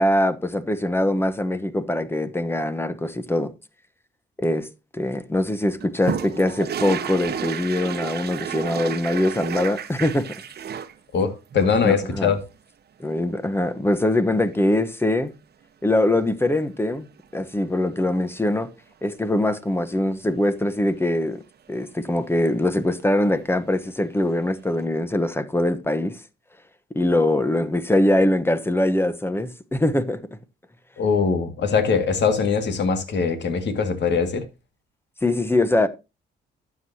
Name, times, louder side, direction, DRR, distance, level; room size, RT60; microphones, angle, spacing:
voice 1, 0.0-3.5 4.4-4.7 4.9-10.2 11.8-12.3 13.0-15.3 15.8-17.1 17.3-18.7 19.0-21.4 21.7-26.2 26.9-30.2 35.2-35.9, left 1 dB, 10° left, 1.0 m, -22 dB
sound 1, 5.8-10.9 11.5-12.5 14.5-14.6 14.9-15.0 17.2-17.5 23.4-23.5 23.8-23.9, right 8 dB, 55° right, 1.0 m, -31 dB
voice 2, 11.1-12.4 31.0-34.4, left 5 dB, 60° left, 2.1 m, -22 dB
12.0 x 7.8 x 2.8 m
cardioid pair, 90°, 20 cm